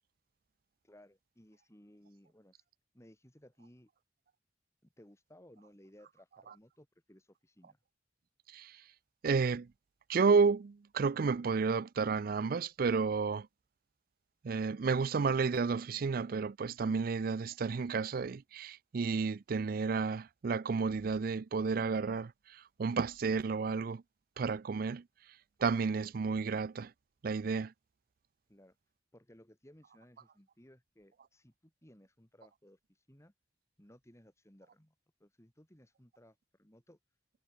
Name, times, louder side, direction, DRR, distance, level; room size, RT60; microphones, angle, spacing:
voice 1, 0.8-2.6 2.9-3.9 5.0-7.8 28.5-28.8 29.1-33.3 33.8-34.9 35.2-37.0, equal, 15° left, 3.1 m, -60 dB
voice 2, 8.5-8.8 9.2-9.7 10.1-13.5 14.4-24.0 24.4-25.0 25.6-26.9 27.2-27.7, right 5 dB, 55° right, 0.4 m, -31 dB
head